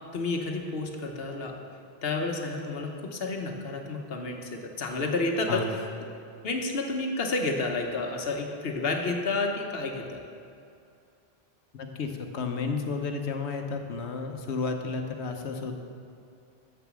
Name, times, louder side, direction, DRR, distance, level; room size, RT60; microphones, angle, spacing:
voice 1, 0.1-1.5 2.0-5.6 6.4-10.2, left 3 dB, 65° left, 2 dB, 1.1 m, -30 dB
voice 2, 11.7-15.8, left 4 dB, 90° left, 5 dB, 1.1 m, -32 dB
7.3 x 6.9 x 6.2 m, 2.4 s
omnidirectional pair, 1.1 m